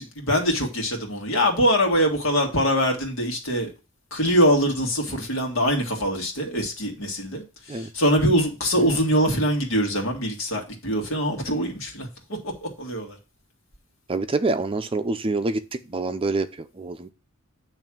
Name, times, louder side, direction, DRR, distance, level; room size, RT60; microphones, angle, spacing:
voice 1, 0.0-3.7 4.1-7.4 7.7-13.2, equal, 70° left, 2 dB, 2.0 m, -23 dB
voice 2, 14.1-16.5 16.8-17.1, right 3 dB, 25° right, 8 dB, 0.5 m, -26 dB
9.1 x 3.3 x 6.1 m, 0.31 s
head